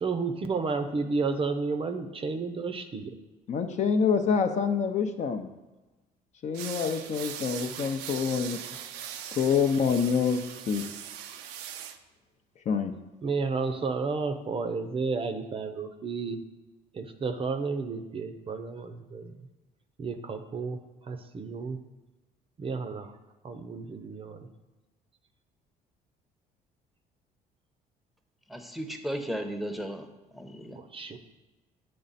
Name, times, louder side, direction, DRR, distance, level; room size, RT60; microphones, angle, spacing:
voice 1, 0.0-3.1 13.2-16.4 16.9-19.3 20.0-20.8 21.1-21.8 22.6-23.1 23.4-24.5 30.9-31.2, right 4 dB, 35° right, 8 dB, 0.5 m, -32 dB
voice 2, 3.5-5.5 6.4-8.6 9.4-10.4 10.7-10.8 12.7-12.9, left 6 dB, 45° left, 7 dB, 0.6 m, -26 dB
sound 1, 6.5-12.0, right 9 dB, 90° right, 0.5 m, -40 dB
voice 3, 28.5-30.1 30.3-30.8, equal, ahead, 6 dB, 0.7 m, -35 dB
8.6 x 3.3 x 4.1 m, 1.1 s
cardioid pair, 90°, 16 cm